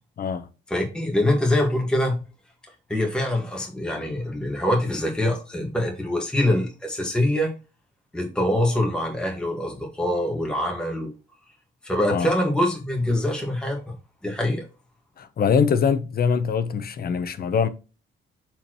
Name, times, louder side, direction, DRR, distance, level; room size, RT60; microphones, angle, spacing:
voice 1, 0.7-2.2 2.9-7.5 8.1-11.1 11.8-13.9 14.2-14.6, left 1 dB, 5° left, 1.7 m, -24 dB
voice 2, 15.2-17.7, left 6 dB, 45° left, 0.8 m, -23 dB
7.0 x 4.4 x 3.0 m
cardioid pair, 125°, 21 cm